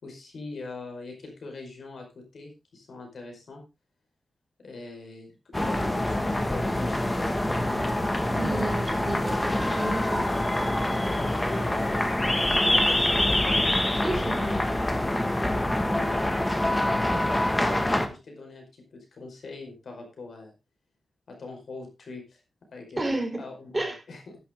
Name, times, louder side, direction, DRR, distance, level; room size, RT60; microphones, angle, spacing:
voice 1, 0.0-3.6 4.6-8.0 11.3-14.6 15.8-16.3 16.9-20.5 21.3-22.4 22.7-24.4, left 3 dB, 70° left, 2 dB, 5.0 m, -42 dB
sound 1, 5.5-18.1, left 1 dB, 15° left, 1.8 m, -25 dB
voice 2, 8.3-10.2 14.0-14.4 23.0-23.4 23.7-24.0, right 2 dB, 20° right, 3 dB, 4.2 m, -31 dB
12.0 x 10.5 x 3.7 m, 0.27 s
wide cardioid pair, 105°, 0 cm